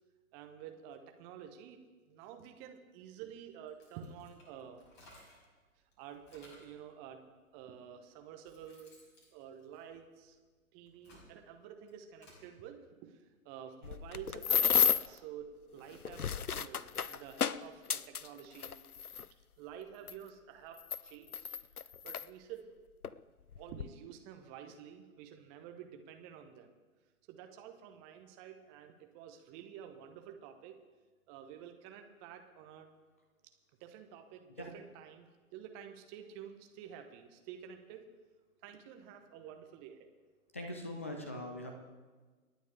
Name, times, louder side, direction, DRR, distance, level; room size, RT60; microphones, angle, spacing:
voice 1, 0.3-1.8 2.1-4.8 6.0-7.2 7.5-9.0 9.3-10.4 10.7-16.8 17.1-18.7 19.6-21.5 22.0-22.7 23.6-26.7 27.3-30.8 31.3-32.9 33.8-38.1 38.6-40.1, right 9 dB, 20° right, 5 dB, 1.2 m, -50 dB
sound 1, 3.7-5.5 5.9-6.8 7.6-7.7 8.2-10.3 10.8-12.5, left 1 dB, 30° left, 5.7 m, -61 dB
sound 2, 13.8-15.2 15.9-19.3 20.1-20.2 20.8-22.3 23.0-23.2 23.5-23.9, left 7 dB, 85° left, 0.6 m, -32 dB
voice 2, 40.5-41.7, left 1 dB, 10° left, 3 dB, 0.4 m, -41 dB
28.5 x 9.5 x 3.5 m, 1.4 s
figure-of-eight pair, 125°, 43 cm